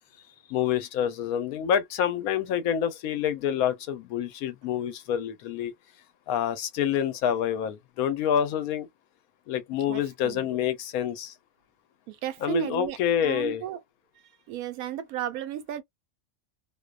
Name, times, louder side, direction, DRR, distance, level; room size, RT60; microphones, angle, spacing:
voice 1, 0.5-5.7 6.3-8.9 9.5-11.3 12.4-13.6, left 9 dB, 80° left, 1.1 m, -27 dB
voice 2, 9.9-10.6 12.1-13.0 13.2-13.8 14.5-15.8, right 11 dB, 85° right, 1.1 m, -34 dB
2.6 x 2.2 x 2.3 m
omnidirectional pair, 1.5 m